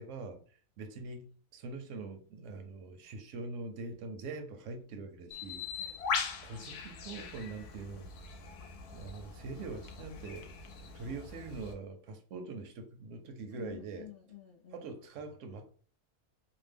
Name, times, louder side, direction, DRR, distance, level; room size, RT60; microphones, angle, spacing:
voice 1, 0.0-5.9 6.4-8.1 8.9-10.5 10.9-14.1 14.7-15.7, right 3 dB, 70° right, 0.8 m, -43 dB
Bird, 5.3-11.7, left 5 dB, 85° left, 1.1 m, -41 dB
voice 2, 5.8-7.1 11.0-11.2 13.5-14.9, left 10 dB, 65° left, 0.5 m, -53 dB
2.8 x 2.1 x 3.3 m
omnidirectional pair, 1.6 m